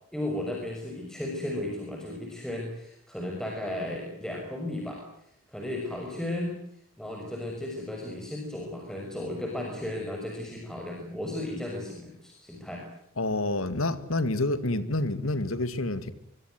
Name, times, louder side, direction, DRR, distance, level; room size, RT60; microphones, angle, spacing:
voice 1, 0.1-5.0 5.5-6.6 7.0-12.9, left 1 dB, 5° left, 6.2 m, -35 dB
voice 2, 13.2-16.1, left 2 dB, 85° left, 2.5 m, -28 dB
25.5 x 24.0 x 7.9 m
head